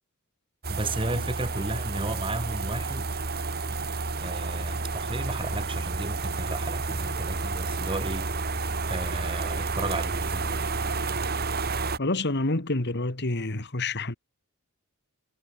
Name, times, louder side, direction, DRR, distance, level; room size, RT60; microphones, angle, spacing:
sound 1, 0.6-12.0, right 3 dB, 45° right, 2.4 m, -30 dB
voice 1, 0.7-3.1 4.2-8.6 8.9-10.7, right 2 dB, 25° right, 2.1 m, -34 dB
voice 2, 12.0-14.1, left 2 dB, 50° left, 2.0 m, -28 dB
head